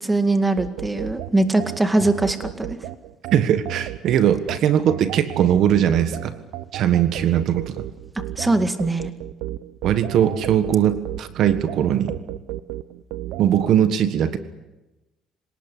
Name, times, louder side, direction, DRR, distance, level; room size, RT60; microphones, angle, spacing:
voice 1, 0.0-2.8 8.4-9.1, right 2 dB, 10° right, 8 dB, 2.1 m, -21 dB
sound 1, 0.6-13.7, right 14 dB, 85° right, 1.0 m, -33 dB
voice 2, 3.3-6.3 6.7-7.8 9.8-12.2 13.4-14.4, right 10 dB, 65° right, 10 dB, 1.5 m, -20 dB
26.5 x 18.5 x 8.5 m, 1.0 s
cardioid pair, 125°, 0 cm